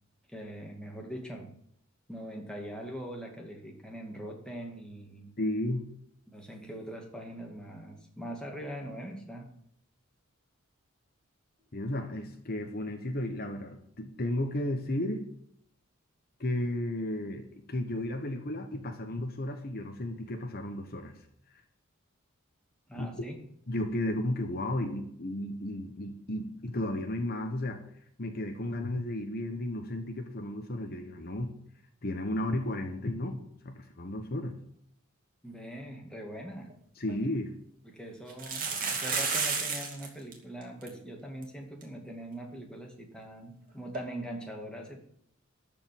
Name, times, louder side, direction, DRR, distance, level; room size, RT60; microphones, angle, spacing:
voice 1, 0.3-1.5 2.1-5.3 6.3-9.5 22.9-23.4 35.4-36.7 37.8-45.0, equal, 5° left, 0 dB, 2.3 m, -42 dB
voice 2, 5.4-5.8 11.7-15.3 16.4-21.2 22.9-23.1 23.7-27.8 28.2-31.5 32.0-34.5 37.0-37.5, left 1 dB, 45° left, 5 dB, 1.2 m, -33 dB
sound 1, 36.7-36.8 37.1-37.2 38.3-40.1 40.3-40.4 40.6-40.9 41.4-41.5 41.8-41.9 43.9-44.0, right 5 dB, 40° right, 2.7 m, -31 dB
13.0 x 5.3 x 9.2 m, 0.70 s
head